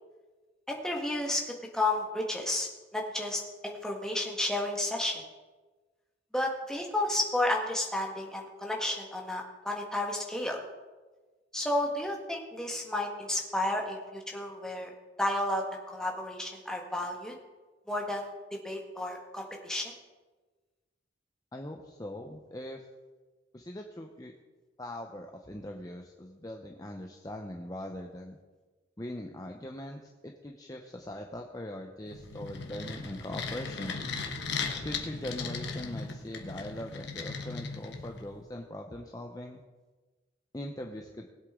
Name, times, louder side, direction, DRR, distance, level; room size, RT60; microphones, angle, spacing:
voice 1, 0.7-5.2 6.3-10.6 11.5-14.9 15.2-17.3 17.9-19.9, left 1 dB, 5° left, 0 dB, 1.5 m, -32 dB
voice 2, 21.5-22.8 23.5-24.3 24.8-28.4 29.0-34.0 34.8-39.6 40.5-41.3, left 1 dB, 20° left, 2 dB, 0.7 m, -41 dB
sound 1, 32.1-38.4, left 4 dB, 65° left, 1.3 m, -37 dB
20.5 x 8.1 x 3.7 m, 1.3 s
head